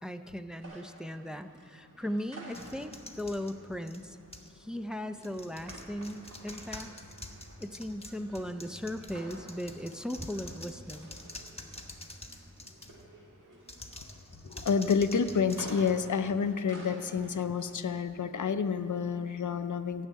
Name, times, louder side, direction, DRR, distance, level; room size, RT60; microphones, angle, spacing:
voice 1, 0.0-4.2 4.5-6.9 7.6-11.1, equal, ahead, 8 dB, 0.5 m, -38 dB
sound 1, 0.6-19.5, right 1 dB, 85° right, 2.0 m, -52 dB
sound 2, 2.5-4.6 5.2-13.1 13.6-16.5, left 1 dB, 20° left, 1.1 m, -48 dB
voice 2, 14.4-20.1, left 6 dB, 75° left, 10 dB, 0.6 m, -29 dB
13.5 x 6.5 x 9.3 m, 2.3 s
wide cardioid pair, 60°, 31 cm